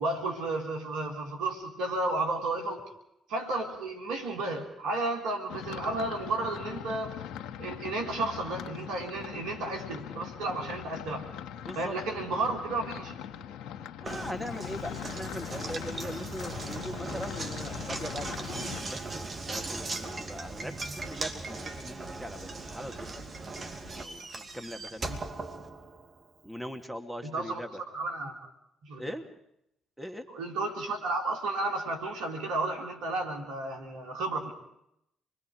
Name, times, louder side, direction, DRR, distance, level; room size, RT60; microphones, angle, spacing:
voice 1, 0.0-2.8 3.3-7.2 7.6-11.3 11.8-13.2 25.1-25.2 27.2-27.6 27.9-28.5 28.8-29.1 30.3-34.5, right 2 dB, 80° right, 3 dB, 3.5 m, -32 dB
sound 1, 5.5-18.8, left 9 dB, 70° left, 1.9 m, -41 dB
voice 2, 14.0-19.0 19.4-23.2 23.9-25.1 26.4-27.8 29.0-29.3 30.0-30.2, equal, 5° right, 5 dB, 2.8 m, -40 dB
Knock, 14.1-26.2, right 3 dB, 45° right, 2.9 m, -39 dB
27.5 x 22.0 x 4.9 m, 0.78 s
hypercardioid pair, 50°, 0 cm